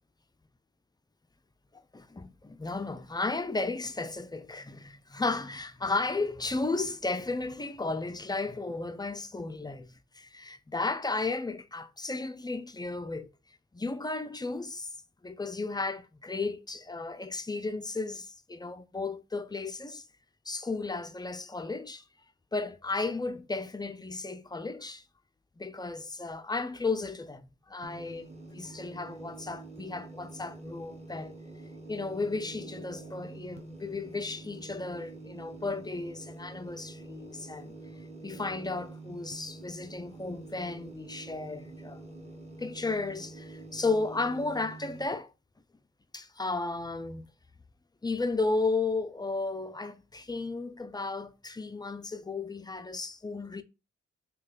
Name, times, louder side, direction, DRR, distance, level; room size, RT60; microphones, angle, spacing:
voice 1, 1.9-13.3 13.7-14.9 15.2-20.0 20.5-22.0 22.5-25.0 25.6-31.4 31.9-37.7 38.2-42.0 42.6-45.3 46.1-47.3 48.0-53.6, left 3 dB, 15° left, 0.4 m, -34 dB
sound 1, 27.8-45.1, right 3 dB, 20° right, 1.0 m, -46 dB
3.1 x 2.2 x 3.8 m
supercardioid pair, 50°, 31 cm